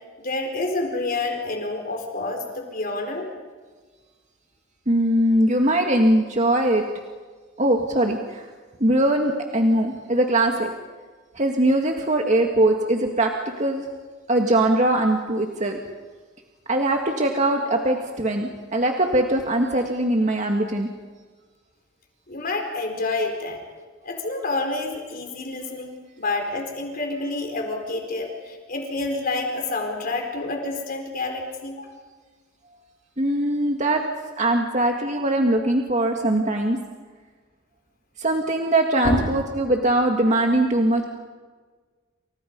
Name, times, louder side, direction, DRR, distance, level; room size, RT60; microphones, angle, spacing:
voice 1, 0.2-3.3 22.3-23.6 24.0-31.9 39.0-39.3, left 2 dB, 45° left, 3 dB, 4.4 m, -28 dB
voice 2, 4.9-6.8 7.6-8.4 8.8-10.7 11.4-13.3 13.6-13.9 14.3-15.8 16.7-20.9 33.2-34.0 34.4-36.8 38.2-41.0, right 1 dB, 35° right, 2 dB, 2.0 m, -21 dB
30.0 x 29.0 x 5.4 m, 1.4 s
head